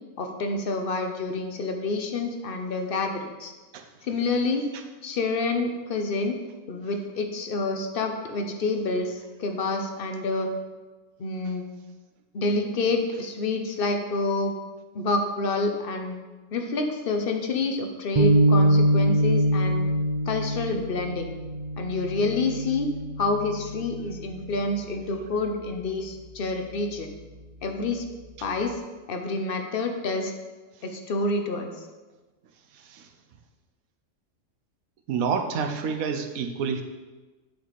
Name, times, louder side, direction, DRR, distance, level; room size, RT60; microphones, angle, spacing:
voice 1, 0.2-3.5 4.1-4.6 5.0-6.4 6.7-10.5 11.2-11.7 12.3-14.5 14.9-16.2 16.5-19.9 20.3-21.3 21.8-22.9 23.2-27.1 27.6-28.0 28.4-28.8 29.1-30.3 30.8-31.7, left 3 dB, 50° left, 5 dB, 0.8 m, -28 dB
sound 1, 18.1-24.6, right 1 dB, 40° right, 0.7 m, -24 dB
voice 2, 35.1-36.8, right 6 dB, 85° right, 7 dB, 1.2 m, -28 dB
8.3 x 4.7 x 4.1 m, 1.2 s
omnidirectional pair, 1.4 m